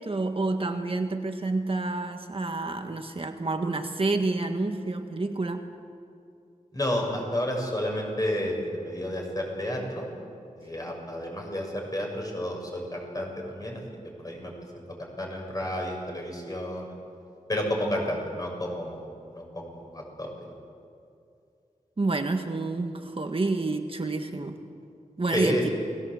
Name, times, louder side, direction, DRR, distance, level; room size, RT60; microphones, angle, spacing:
voice 1, 0.0-5.7 22.0-24.6 25.2-25.7, right 3 dB, 40° right, 5 dB, 1.7 m, -28 dB
voice 2, 6.7-10.0 10.6-13.8 14.2-16.9 17.5-20.5 25.3-25.6, left 1 dB, 25° left, 1 dB, 6.8 m, -31 dB
28.5 x 21.0 x 7.9 m, 2.5 s
wide cardioid pair, 85°, 14 cm